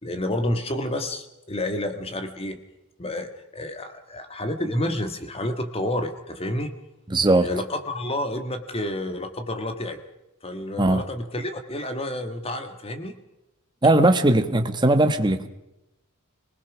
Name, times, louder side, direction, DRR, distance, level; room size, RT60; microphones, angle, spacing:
voice 1, 0.0-2.6 3.0-6.7 7.4-10.0 10.4-13.1, left 1 dB, 25° left, 1.5 m, -29 dB
voice 2, 7.1-7.5 10.8-11.0 13.8-15.5, right 2 dB, 20° right, 1.2 m, -19 dB
26.0 x 20.0 x 6.1 m
head